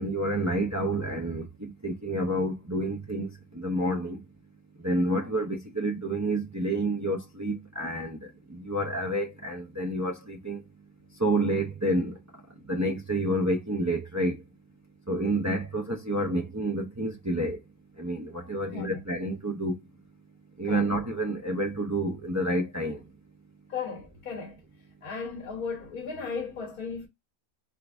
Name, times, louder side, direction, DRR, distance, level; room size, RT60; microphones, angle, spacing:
voice 1, 0.0-3.3 3.6-4.2 4.8-8.2 8.5-10.6 11.2-12.1 12.7-14.4 15.1-17.6 18.0-19.8 20.6-23.0, right 1 dB, 20° right, 0.5 m, -29 dB
voice 2, 23.7-24.6 25.0-27.1, left 5 dB, 85° left, 1.6 m, -36 dB
3.9 x 3.6 x 3.4 m
omnidirectional pair, 1.5 m